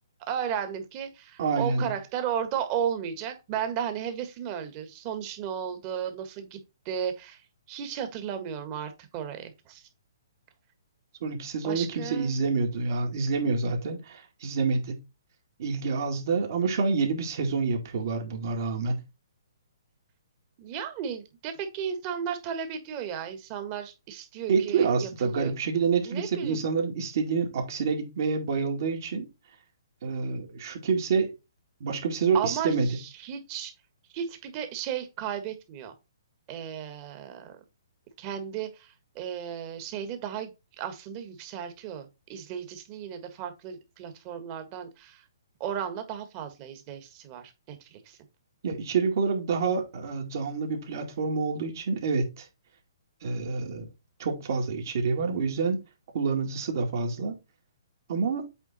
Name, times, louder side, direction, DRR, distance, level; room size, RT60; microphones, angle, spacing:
voice 1, 0.3-7.4 7.7-9.8 11.6-12.3 20.6-25.6 26.1-26.6 32.3-33.7 34.1-35.9 36.5-37.6 38.2-45.2 45.6-48.2, right 8 dB, 30° right, 1.6 m, -34 dB
voice 2, 1.4-1.9 11.2-15.0 15.6-19.0 24.5-29.3 30.0-31.3 31.8-33.0 48.6-52.5 53.2-53.9 54.2-55.8 56.1-57.4 58.1-58.5, right 4 dB, 55° right, 2.2 m, -27 dB
8.2 x 3.6 x 4.3 m
hypercardioid pair, 145°, 2 cm